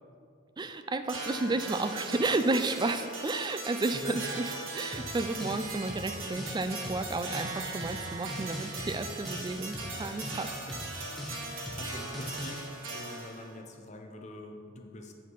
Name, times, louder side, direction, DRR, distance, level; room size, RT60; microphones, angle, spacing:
voice 1, 0.6-10.5, right 2 dB, 20° right, 9 dB, 0.3 m, -32 dB
sound 1, 1.1-13.6, right 2 dB, 80° right, 1.5 m, -39 dB
sound 2, 4.9-12.6, equal, ahead, 1.1 m, -42 dB
voice 2, 11.6-15.1, left 2 dB, 35° left, 3 dB, 0.8 m, -45 dB
8.0 x 5.7 x 4.6 m, 2.3 s
head